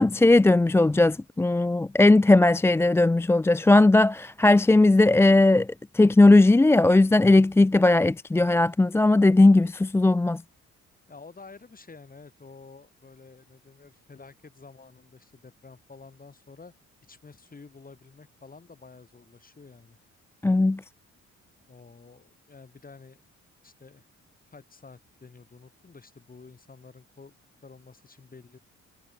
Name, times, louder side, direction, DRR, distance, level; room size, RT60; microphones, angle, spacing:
voice 1, 0.0-5.7 5.9-10.4 20.4-20.8, left 2 dB, 10° left, 0.4 m, -18 dB
voice 2, 11.1-16.7 17.1-20.0 21.7-23.2 23.6-24.0 24.5-27.3 27.6-28.6, left 4 dB, 30° left, 6.5 m, -50 dB
cardioid pair, 90°, 30 cm